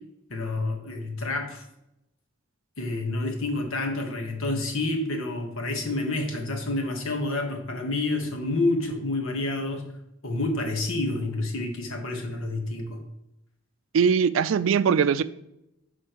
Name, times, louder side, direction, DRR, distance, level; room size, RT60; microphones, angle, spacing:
voice 1, 0.3-1.6 2.8-9.8 10.2-13.0, left 2 dB, 80° left, 1.3 m, -28 dB
voice 2, 13.9-15.2, right 6 dB, 75° right, 0.4 m, -21 dB
11.5 x 4.3 x 3.0 m
head